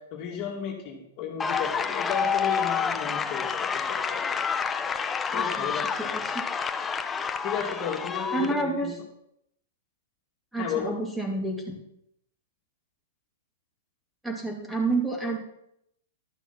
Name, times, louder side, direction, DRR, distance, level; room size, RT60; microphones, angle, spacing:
voice 1, 0.0-4.2 5.3-6.2 7.4-9.0 10.6-10.9, left 7 dB, 40° left, 1 dB, 2.2 m, -34 dB
sound 1, 1.4-8.6, left 6 dB, 15° left, 0.7 m, -29 dB
voice 2, 5.3-5.7 6.1-6.4 8.3-8.9 10.5-11.8 14.2-15.5, right 2 dB, 5° right, 0 dB, 2.5 m, -29 dB
12.0 x 6.2 x 5.7 m, 0.77 s
hypercardioid pair, 115°, 0 cm